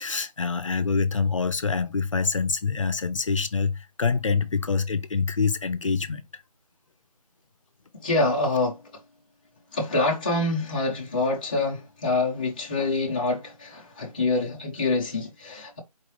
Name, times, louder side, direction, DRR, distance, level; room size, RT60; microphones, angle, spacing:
voice 1, 0.0-6.2, left 5 dB, 55° left, 0.7 m, -25 dB
voice 2, 7.9-8.8 9.7-15.8, left 2 dB, 15° left, 0.6 m, -26 dB
4.6 x 3.1 x 3.1 m
figure-of-eight pair, 170°, 20 cm